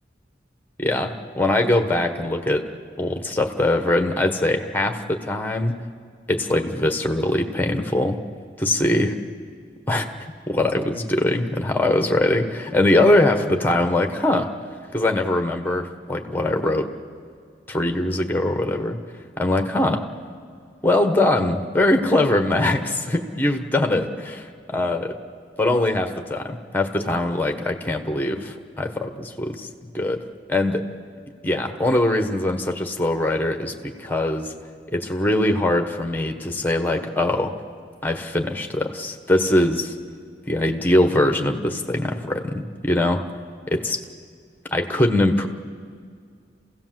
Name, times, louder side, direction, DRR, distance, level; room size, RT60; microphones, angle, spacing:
voice 1, 0.8-2.7 3.0-5.8 6.3-8.2 8.6-9.2 9.9-10.1 10.5-14.5 14.9-16.9 17.7-19.0 19.4-20.1 20.8-25.2 25.6-30.9 31.4-34.5 34.9-37.6 38.0-39.9 40.5-43.2 43.7-44.0 44.7-45.5, left 1 dB, 10° left, 5 dB, 1.3 m, -22 dB
27.0 x 16.5 x 7.7 m, 2.1 s
head